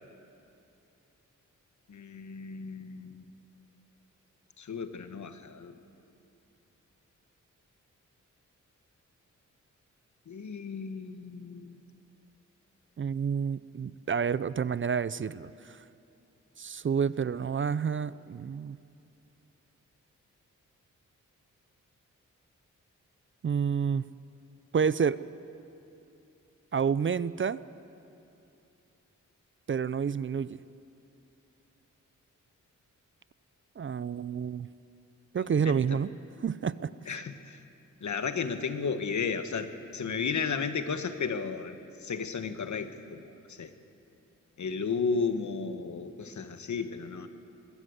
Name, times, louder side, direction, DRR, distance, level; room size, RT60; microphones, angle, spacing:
voice 1, 1.9-3.3 4.6-5.7 10.3-11.8 35.4-36.0 37.1-37.6 38.0-43.2 43.6-43.7 44.6-47.3, left 5 dB, 65° left, 9 dB, 1.3 m, -34 dB
voice 2, 13.0-15.8 16.6-18.8 23.4-24.0 24.7-25.2 26.7-27.6 29.7-30.6 33.8-34.7 35.3-36.1 36.4-37.2, right 6 dB, 40° right, 17 dB, 0.5 m, -29 dB
21.5 x 15.5 x 8.0 m, 2.7 s
cardioid pair, 70°, 31 cm